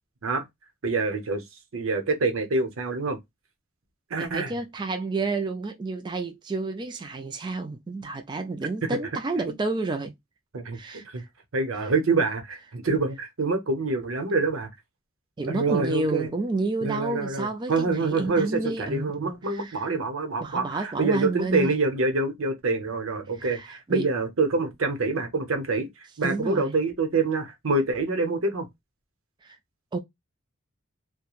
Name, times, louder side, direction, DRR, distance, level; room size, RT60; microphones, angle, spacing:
voice 1, 0.8-1.4 1.7-3.2 4.1-4.5 8.8-9.0 10.5-10.8 11.0-11.2 11.5-14.7 15.5-16.3 16.8-25.9 26.2-28.7, right 3 dB, 80° right, 0.8 m, -26 dB
voice 2, 4.2-10.1 10.7-11.3 15.4-19.9 20.4-21.8 23.4-24.1 26.2-26.7 29.4-29.6 29.9-30.0, right 3 dB, 20° right, 0.3 m, -30 dB
3.0 x 2.2 x 2.3 m
head